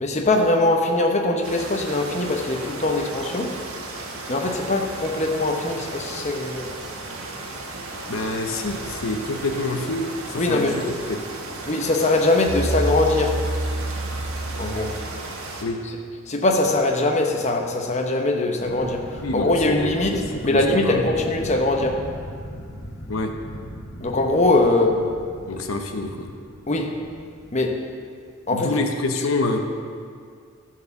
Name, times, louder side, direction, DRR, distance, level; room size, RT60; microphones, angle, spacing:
voice 1, 0.0-3.6 4.3-6.7 10.4-10.8 11.7-13.4 14.6-14.9 16.3-22.1 24.0-25.0 26.7-27.0 27.5-27.8 28.5-28.7, left 2 dB, 30° left, 2 dB, 0.8 m, -22 dB
sound 1, 1.4-15.6, right 2 dB, 80° right, 1.5 m, -35 dB
voice 2, 8.1-11.2 15.6-15.8 19.2-21.1 23.1-23.3 25.5-26.3 28.5-29.6, left 2 dB, 70° left, 5 dB, 0.8 m, -27 dB
sound 2, 12.5-15.6, right 1 dB, ahead, 1.5 m, -28 dB
sound 3, 18.6-27.6, equal, 55° left, 1.4 m, -38 dB
13.5 x 4.7 x 7.0 m, 2.2 s
head